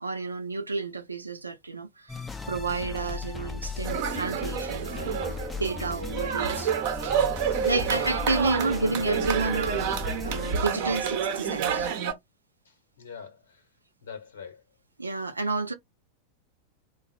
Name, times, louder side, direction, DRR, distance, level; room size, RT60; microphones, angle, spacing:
voice 1, 0.0-2.2 2.5-6.7 7.6-9.9 10.2-11.9 15.0-15.7, right 3 dB, 80° right, 0.6 m, -30 dB
sound 1, 2.1-10.5, left 5 dB, 10° left, 0.5 m, -37 dB
voice 2, 2.7-3.0 7.7-8.0 12.6-13.6 14.0-14.6, left 6 dB, 70° left, 1.0 m, -44 dB
sound 2, 3.8-12.1, right 7 dB, 50° right, 0.9 m, -29 dB
3.3 x 2.3 x 4.1 m
figure-of-eight pair, 90°, 0 cm